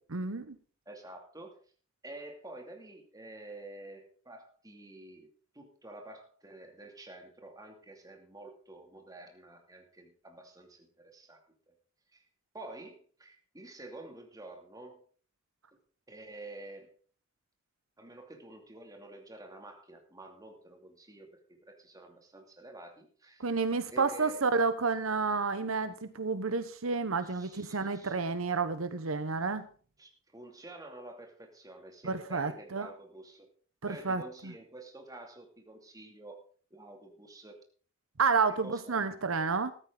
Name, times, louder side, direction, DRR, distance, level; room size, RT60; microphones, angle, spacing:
voice 1, 0.1-0.6 23.4-29.7 32.0-32.9 33.8-34.2 38.2-39.7, right 4 dB, 80° right, 12 dB, 1.0 m, -30 dB
voice 2, 0.9-1.5 2.0-5.3 5.5-11.4 12.1-12.2 12.5-15.0 16.1-17.0 18.0-23.6 23.9-24.5 27.2-28.2 30.0-33.5 33.8-36.4 36.7-37.6 38.6-39.1, right 2 dB, 20° right, 3 dB, 2.7 m, -49 dB
14.5 x 12.5 x 3.9 m, 0.42 s
head